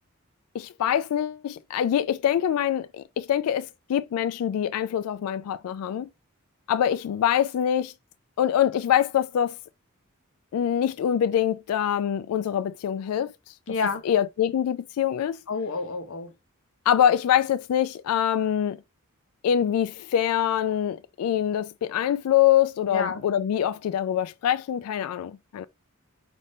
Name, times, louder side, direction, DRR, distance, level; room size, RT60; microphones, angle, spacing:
voice 1, 0.5-6.1 6.7-7.9 8.4-9.6 10.5-13.3 14.1-15.4 16.9-18.8 19.4-25.7, left 10 dB, 90° left, 0.3 m, -24 dB
voice 2, 13.7-14.0 15.5-16.3 22.9-23.2, left 4 dB, 65° left, 0.8 m, -29 dB
5.3 x 2.6 x 3.2 m
head